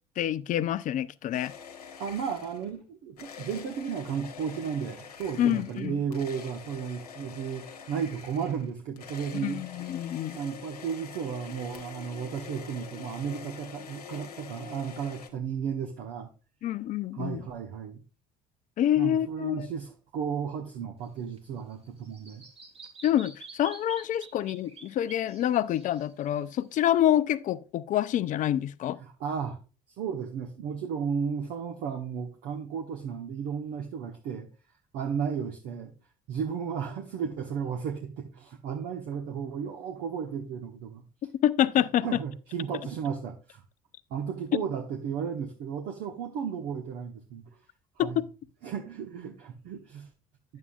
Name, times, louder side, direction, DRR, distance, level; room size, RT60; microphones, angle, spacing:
voice 1, 0.2-1.5 5.4-6.0 9.3-10.4 16.6-17.4 18.8-19.7 23.0-29.0 41.4-42.1 48.0-48.3, left 11 dB, 45° left, 0.5 m, -27 dB
sound 1, 1.3-2.8 3.2-15.3, left 7 dB, 85° left, 1.1 m, -45 dB
voice 2, 2.0-9.6 10.3-16.3 17.1-18.0 19.0-22.4 29.0-29.6 30.0-34.5 34.9-35.9 36.3-41.0 42.0-43.6 44.1-47.4 48.0-48.2 48.6-50.1, right 7 dB, 60° right, 1.2 m, -34 dB
Bird vocalization bird call bird song, 21.0-26.9, right 4 dB, 30° right, 1.5 m, -49 dB
9.7 x 7.4 x 2.4 m
figure-of-eight pair, 55°, 19 cm